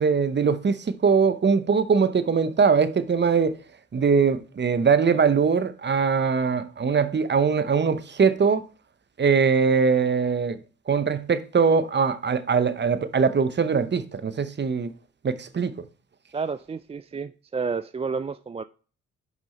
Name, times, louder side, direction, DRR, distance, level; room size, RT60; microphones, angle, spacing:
voice 1, 0.0-3.6 3.9-8.6 9.2-10.6 10.9-14.9 15.2-15.9, right 5 dB, 35° right, 0.8 m, -22 dB
voice 2, 16.3-18.6, right 5 dB, 20° right, 0.3 m, -30 dB
6.1 x 5.4 x 4.2 m
supercardioid pair, 55°, 30 cm